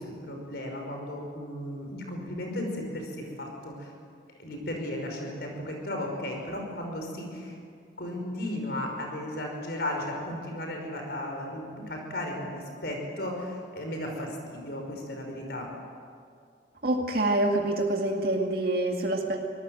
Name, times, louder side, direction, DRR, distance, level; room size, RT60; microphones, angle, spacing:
voice 1, 0.0-3.9 4.4-7.6 8.0-15.7, left 1 dB, 60° left, 2 dB, 5.6 m, -35 dB
voice 2, 16.8-19.4, right 1 dB, 55° right, 1 dB, 2.2 m, -26 dB
25.5 x 19.5 x 7.9 m, 2.3 s
head